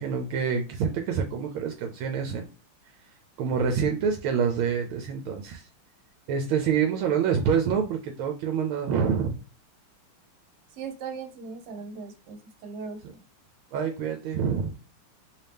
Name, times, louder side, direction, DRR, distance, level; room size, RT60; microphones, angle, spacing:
voice 1, 0.0-2.5 3.4-5.6 6.3-9.4 13.7-14.7, right 6 dB, 80° right, 4 dB, 1.4 m, -26 dB
voice 2, 10.7-13.2, right 5 dB, 60° right, 5 dB, 1.3 m, -39 dB
3.4 x 2.8 x 3.4 m, 0.34 s
omnidirectional pair, 2.4 m